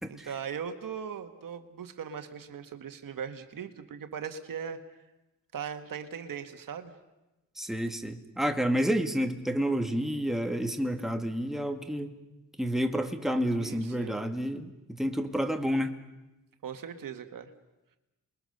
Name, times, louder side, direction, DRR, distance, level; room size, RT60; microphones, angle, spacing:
voice 1, 0.1-4.8 5.5-6.9 13.6-14.2 16.6-17.5, right 7 dB, 70° right, 7 dB, 1.7 m, -39 dB
voice 2, 7.6-12.1 12.6-15.9, equal, ahead, 5 dB, 2.1 m, -29 dB
28.5 x 22.0 x 6.8 m, 1.0 s
cardioid pair, 70°, 34 cm